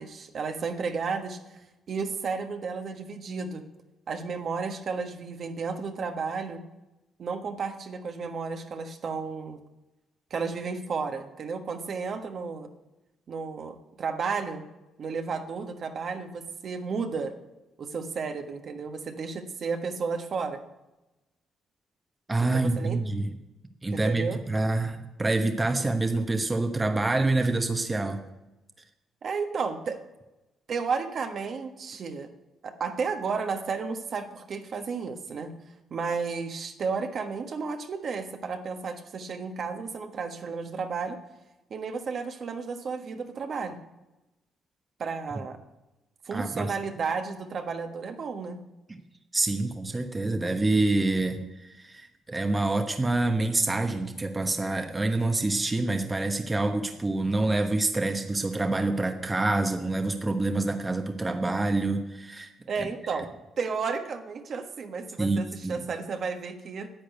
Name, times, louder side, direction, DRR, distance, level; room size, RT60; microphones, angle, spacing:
voice 1, 0.0-1.4 1.9-3.6 4.1-6.6 7.2-9.6 10.3-12.7 13.3-14.6 15.0-17.3 17.8-20.6 22.5-23.0 23.9-24.4 29.2-30.0 30.7-32.3 32.6-35.5 35.9-41.2 41.7-43.8 45.0-45.6 46.2-48.6 62.7-63.3 63.6-66.9, right 5 dB, 55° right, 5 dB, 1.4 m, -32 dB
voice 2, 22.3-23.3 23.8-28.2 46.3-46.8 48.9-49.0 49.3-63.2 65.2-65.9, right 2 dB, 20° right, 5 dB, 1.1 m, -27 dB
10.5 x 8.6 x 8.2 m, 1.0 s
cardioid pair, 90°, 0 cm